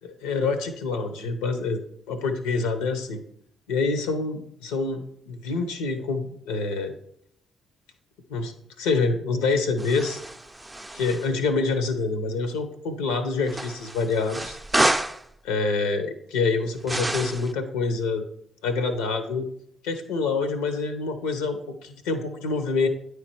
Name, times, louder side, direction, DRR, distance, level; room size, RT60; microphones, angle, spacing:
voice 1, 0.0-1.8 2.1-3.2 3.7-6.9 8.3-10.2 10.9-14.6 15.4-18.2 18.6-19.5 19.8-22.9, left 4 dB, 75° left, 9 dB, 0.7 m, -26 dB
sound 1, 9.8-11.3 13.5-15.2 16.8-17.5, right 1 dB, 15° right, 0.5 m, -28 dB
9.5 x 3.2 x 4.6 m, 0.71 s
figure-of-eight pair, 40°, 0 cm